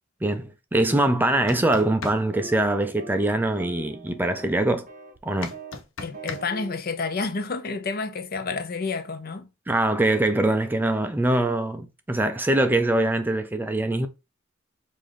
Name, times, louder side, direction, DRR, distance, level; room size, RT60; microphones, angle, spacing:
voice 1, 0.2-4.9 5.2-5.5 9.7-14.1, right 1 dB, 10° right, 0.4 m, -23 dB
sound 1, 1.3-2.2 5.4-6.4, left 4 dB, 90° left, 0.8 m, -35 dB
sound 2, 1.7-2.0 2.3-2.6 3.0-3.3 3.6-4.5 4.9-5.2 5.5-5.8 6.1-6.8, right 3 dB, 40° right, 0.8 m, -41 dB
voice 2, 6.0-9.5, left 4 dB, 50° left, 0.6 m, -30 dB
4.9 x 2.6 x 3.8 m
head